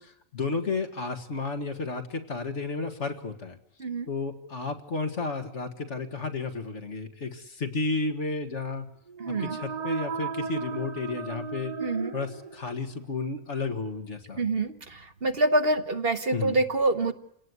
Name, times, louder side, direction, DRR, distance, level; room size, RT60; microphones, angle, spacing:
voice 1, 0.0-3.6 4.1-8.9 9.4-11.7 12.1-14.4 16.3-16.6, left 3 dB, 60° left, 6 dB, 2.2 m, -32 dB
sound 1, 9.1-12.9, right 5 dB, 30° right, 1.4 m, -35 dB
voice 2, 9.2-9.6 11.8-12.1 14.4-17.1, right 2 dB, 45° right, 8 dB, 1.3 m, -26 dB
29.5 x 18.0 x 9.6 m, 0.79 s
omnidirectional pair, 1.4 m